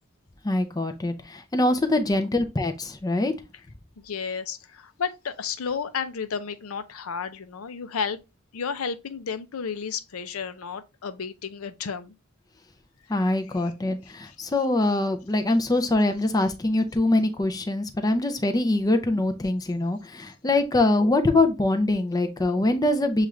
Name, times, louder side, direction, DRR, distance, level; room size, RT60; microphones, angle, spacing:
voice 1, 0.4-3.3 13.1-23.3, left 2 dB, 20° left, 0.5 m, -23 dB
voice 2, 4.0-8.2 8.5-12.1, left 6 dB, 75° left, 0.5 m, -32 dB
7.1 x 2.4 x 3.1 m
head